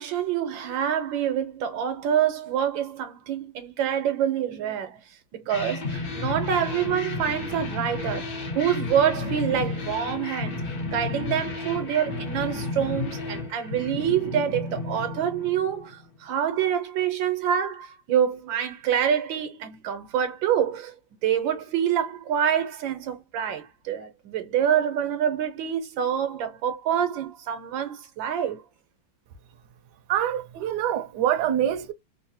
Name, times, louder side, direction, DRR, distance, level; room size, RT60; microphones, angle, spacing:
voice 1, 0.0-5.0 5.3-10.6 10.9-20.9 21.2-28.6, right 9 dB, 90° right, 1.5 m, -26 dB
sound 1, 5.5-16.0, left 3 dB, 55° left, 1.0 m, -32 dB
voice 2, 30.1-31.9, right 11 dB, 75° right, 1.1 m, -25 dB
3.6 x 2.1 x 2.7 m
omnidirectional pair, 2.0 m